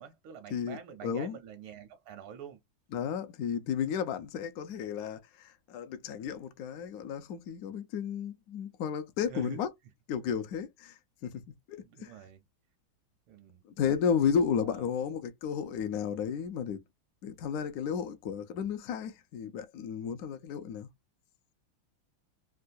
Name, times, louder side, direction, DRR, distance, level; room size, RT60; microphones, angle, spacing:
voice 1, 0.0-2.6 9.3-9.6 11.8-12.4 13.3-13.6 14.6-14.8, right 8 dB, 85° right, 1.6 m, -46 dB
voice 2, 0.5-1.4 2.9-9.7 10.1-11.4 11.7-12.1 13.7-16.8 17.2-20.9, left 7 dB, 90° left, 0.8 m, -33 dB
3.7 x 2.2 x 2.5 m
omnidirectional pair, 2.2 m